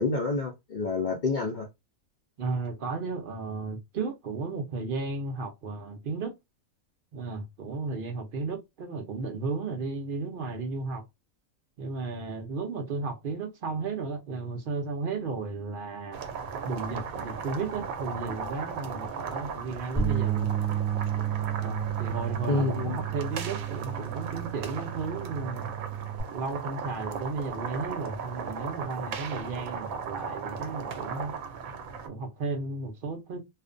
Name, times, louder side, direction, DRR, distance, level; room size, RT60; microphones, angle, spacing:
voice 1, 0.0-1.7 22.5-23.0, left 4 dB, 70° left, 0.4 m, -28 dB
voice 2, 2.4-6.3 7.1-11.0 11.8-16.2 16.6-20.5 21.6-25.7 26.3-31.4 32.0-33.4, right 4 dB, 60° right, 0.6 m, -34 dB
sound 1, 16.1-32.1, right 6 dB, 85° right, 1.0 m, -37 dB
sound 2, 20.0-26.2, right 9 dB, 15° right, 0.8 m, -31 dB
2.4 x 2.1 x 2.4 m
omnidirectional pair, 1.4 m